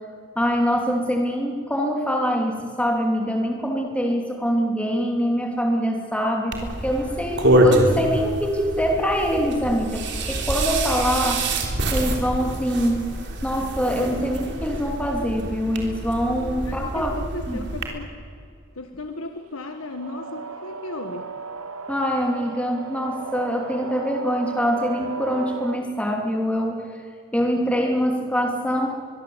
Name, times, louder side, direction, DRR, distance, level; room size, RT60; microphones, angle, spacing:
voice 1, 0.3-11.5 11.9-13.1 13.4-17.1 17.5-17.6 21.9-26.9 27.3-28.9, equal, 5° left, 1 dB, 3.0 m, -24 dB
sound 1, 6.5-17.9, right 1 dB, 50° right, 3.5 m, -25 dB
voice 2, 16.6-18.1 18.7-21.2, left 2 dB, 75° left, 6 dB, 1.5 m, -35 dB
sound 2, 19.6-25.8, right 4 dB, 80° right, 1.3 m, -35 dB
23.5 x 23.0 x 8.1 m, 2.3 s
head